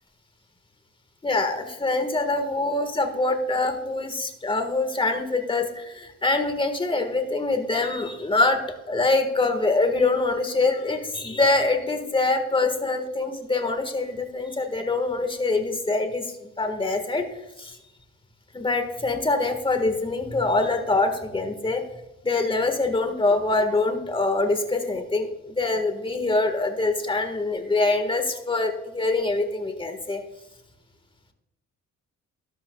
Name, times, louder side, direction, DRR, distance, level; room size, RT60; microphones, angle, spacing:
voice 1, 1.2-8.6 8.9-17.3 17.6-17.8 18.5-21.8 22.2-30.2, left 3 dB, 15° left, 6 dB, 1.6 m, -24 dB
13.0 x 11.5 x 2.3 m, 0.94 s
cardioid pair, 90°, 30 cm